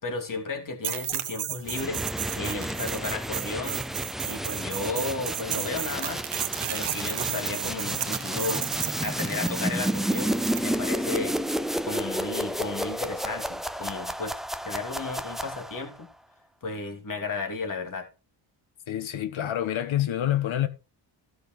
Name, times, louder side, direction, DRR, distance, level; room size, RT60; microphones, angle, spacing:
voice 1, 0.0-3.8 4.2-6.2 6.7-8.7 9.0-11.4 11.8-14.3 14.6-16.1 16.6-18.1, left 3 dB, 45° left, 3.1 m, -34 dB
sound 1, 0.8-10.7, right 10 dB, 65° right, 1.2 m, -33 dB
sound 2, 1.7-16.0, equal, ahead, 0.5 m, -31 dB
voice 2, 18.9-20.7, left 12 dB, 85° left, 1.7 m, -27 dB
15.0 x 6.4 x 4.6 m
wide cardioid pair, 165°, 46 cm